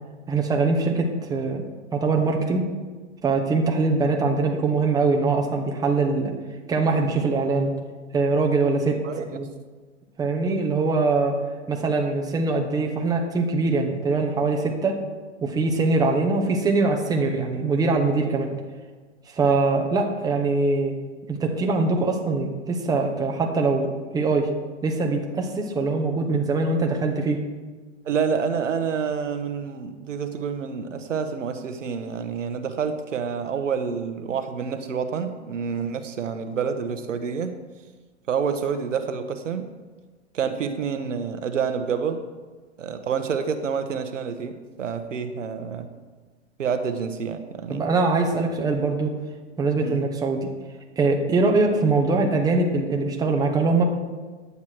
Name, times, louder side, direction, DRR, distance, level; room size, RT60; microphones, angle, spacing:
voice 1, 0.3-1.6 1.9-2.6 3.2-6.3 6.7-7.7 8.1-9.5 10.2-11.3 11.7-15.0 15.4-18.5 19.3-20.9 21.3-24.5 24.8-27.4 47.7-49.1 49.6-50.5 51.0-53.8, right 3 dB, 10° right, 1 dB, 1.2 m, -22 dB
voice 2, 28.0-37.5 38.3-39.7 40.3-42.2 42.8-45.9 46.6-47.8 49.8-50.0, right 6 dB, 85° right, 8 dB, 1.2 m, -28 dB
11.0 x 8.3 x 4.6 m, 1.3 s
hypercardioid pair, 130°, 36 cm